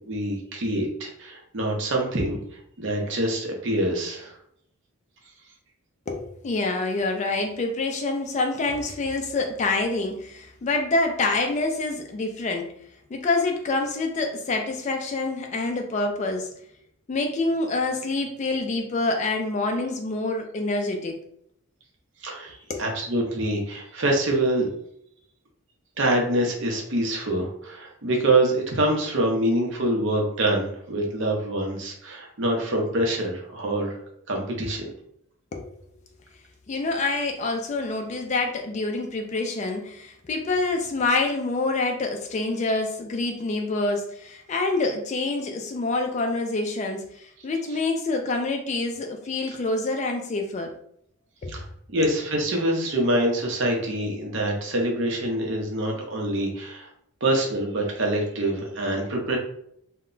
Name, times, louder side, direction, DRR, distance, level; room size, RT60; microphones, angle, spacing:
voice 1, 0.1-2.4 2.8-4.4 22.2-24.7 26.0-34.0 34.3-34.9 51.5-51.6 51.9-56.9 57.2-59.4, right 1 dB, 55° right, 0 dB, 0.6 m, -25 dB
voice 2, 6.1-12.7 13.1-16.5 17.1-21.2 22.7-22.8 35.5-35.7 36.7-50.7 51.4-51.6, left 3 dB, 30° left, 3 dB, 0.3 m, -26 dB
2.1 x 2.1 x 3.7 m, 0.71 s
head